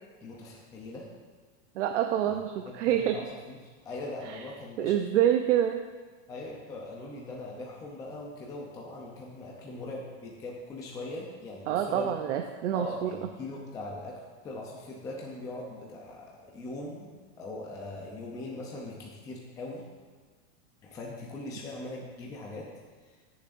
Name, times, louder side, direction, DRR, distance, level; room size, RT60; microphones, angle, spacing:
voice 1, 0.2-1.1 2.9-3.6 3.8-4.9 6.3-12.1 12.7-19.8 20.8-22.7 23.1-23.2, left 2 dB, 10° left, -3 dB, 0.6 m, -40 dB
voice 2, 1.8-3.2 4.2-4.5 4.8-5.8 11.7-13.1, right 10 dB, 80° right, 5 dB, 0.7 m, -27 dB
17.5 x 7.1 x 2.6 m, 1.4 s
supercardioid pair, 180°, 36 cm